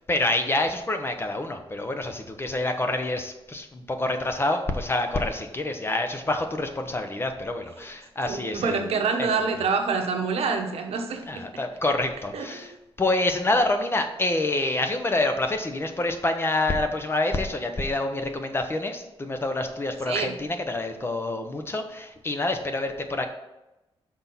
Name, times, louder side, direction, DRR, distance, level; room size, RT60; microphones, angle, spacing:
voice 1, 0.1-8.8 9.2-9.3 11.3-12.7 13.0-23.3, left 2 dB, 25° left, 6 dB, 0.7 m, -27 dB
voice 2, 8.3-11.5 12.3-12.8 20.1-20.3, right 5 dB, 80° right, 4 dB, 1.0 m, -27 dB
6.1 x 4.1 x 5.9 m, 0.95 s
wide cardioid pair, 130°, 10 cm